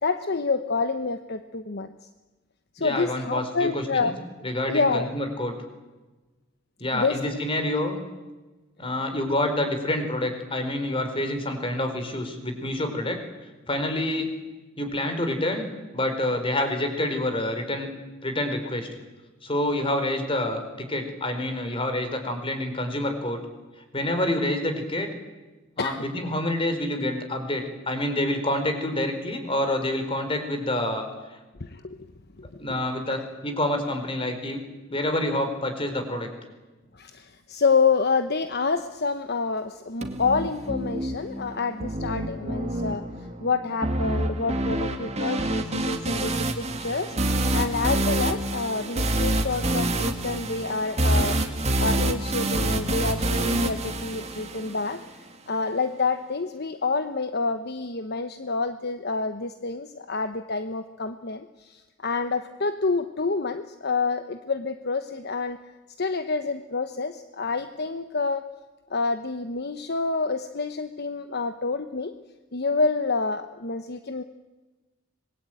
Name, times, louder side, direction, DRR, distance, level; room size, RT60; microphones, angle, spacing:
voice 1, 0.0-2.1 2.7-4.1 4.7-5.1 6.9-7.2 25.8-26.0 31.2-31.3 31.6-32.0 32.5-32.6 33.1-33.2 36.9-51.4 51.8-55.2 55.5-65.6 66.0-68.4 68.9-72.1 72.5-74.2, left 4 dB, 50° left, 9 dB, 1.0 m, -28 dB
voice 2, 2.8-4.1 4.4-5.5 6.8-8.0 8.8-13.2 13.7-14.3 14.8-15.7 15.9-17.9 18.2-18.9 19.4-23.4 23.9-25.1 25.8-31.0 32.6-34.6 34.9-36.3, left 1 dB, 25° left, 7 dB, 4.5 m, -27 dB
sound 1, 40.0-55.0, right 1 dB, 35° right, 2.3 m, -27 dB
25.5 x 21.5 x 9.2 m, 1.2 s
head